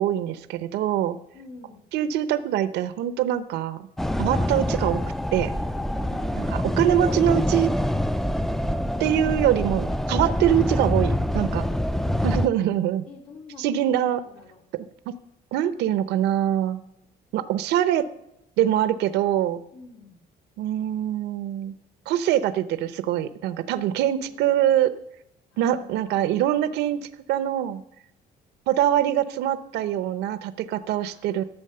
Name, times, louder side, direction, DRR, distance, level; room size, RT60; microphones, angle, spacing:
voice 1, 0.0-1.2 1.9-3.9 4.2-5.0 5.3-5.5 6.4-7.7 9.0-11.6 12.2-13.1 13.6-14.2 15.1-15.2 15.5-16.8 17.3-18.0 18.6-19.6 20.6-21.7 22.1-24.9 25.6-27.0 27.3-27.8 28.7-31.4, right 11 dB, 85° right, 13 dB, 0.7 m, -23 dB
voice 2, 1.3-1.8 6.1-6.6 11.7-12.1 12.4-12.7 13.1-14.6 19.7-20.2 24.0-24.7 25.5-26.6 26.9-27.0 29.8-30.4 31.0-31.4, left 4 dB, 85° left, 0 dB, 3.5 m, -48 dB
sound 1, 4.0-12.5, left 1 dB, ahead, 0.4 m, -25 dB
13.0 x 7.1 x 6.7 m, 0.84 s
cardioid pair, 110°, 17 cm